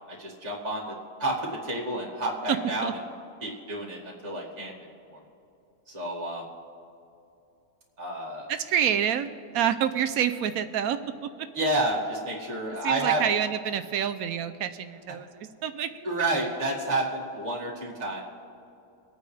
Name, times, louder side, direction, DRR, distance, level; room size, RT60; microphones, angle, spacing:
voice 1, 0.2-0.9 1.2-2.9 3.4-4.7 5.1-5.2 5.9-6.5 8.0-8.5 11.5-13.2 16.0-18.2, right 2 dB, 30° right, -4 dB, 2.1 m, -29 dB
voice 2, 8.5-11.0 11.4-11.5 12.8-16.1, right 9 dB, 80° right, 10 dB, 1.0 m, -27 dB
24.5 x 9.1 x 3.3 m, 2.7 s
omnidirectional pair, 1.5 m